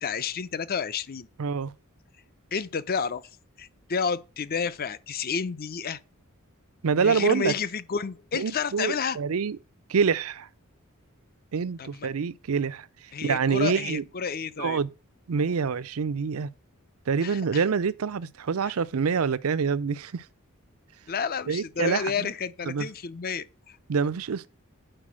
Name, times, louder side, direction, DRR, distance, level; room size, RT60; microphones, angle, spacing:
voice 1, 0.0-1.3 2.5-3.2 3.6-6.0 7.0-9.2 11.8-12.1 13.1-14.8 17.2-17.6 18.6-18.7 21.1-23.8, left 6 dB, 45° left, 0.6 m, -30 dB
voice 2, 1.4-1.7 6.8-7.5 8.3-9.6 9.9-10.5 11.5-12.9 13.2-14.0 14.6-14.9 15.3-16.5 17.1-20.2 21.5-22.3 22.7-22.9 23.9-24.5, right 6 dB, 75° right, 0.5 m, -26 dB
8.8 x 5.0 x 6.2 m
head